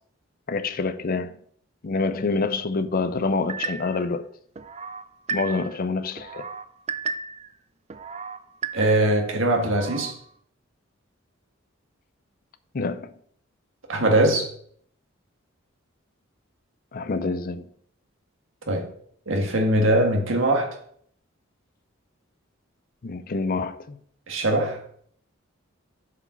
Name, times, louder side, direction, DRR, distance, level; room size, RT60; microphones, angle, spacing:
voice 1, 0.5-1.4 1.8-4.3 5.3-6.5 12.7-13.1 16.9-17.7 23.0-24.0, left 3 dB, 45° left, 0.5 m, -27 dB
sound 1, 3.5-4.1 4.5-5.8 6.2-7.5 7.9-9.2 9.6-10.1, right 5 dB, 30° right, 0.4 m, -34 dB
voice 2, 8.7-10.2 13.9-14.5 18.7-18.9 19.3-20.8 24.3-24.8, right 1 dB, 70° right, 1.7 m, -21 dB
6.9 x 4.9 x 5.5 m
head